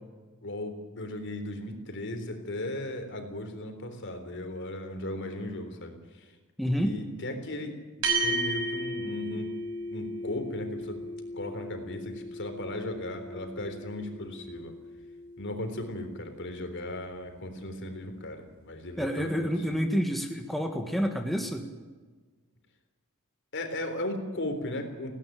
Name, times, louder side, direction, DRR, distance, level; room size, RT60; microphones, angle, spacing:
voice 1, 0.4-6.3 6.8-7.8 8.2-9.5 9.9-11.0 11.3-14.7 15.4-19.8 23.5-25.2, left 1 dB, 55° left, 6 dB, 3.7 m, -36 dB
voice 2, 6.6-6.9 19.0-21.7, equal, ahead, 3 dB, 1.6 m, -28 dB
sound 1, 8.0-16.7, right 1 dB, 65° right, 6.4 m, -35 dB
18.0 x 17.5 x 8.9 m, 1.4 s
head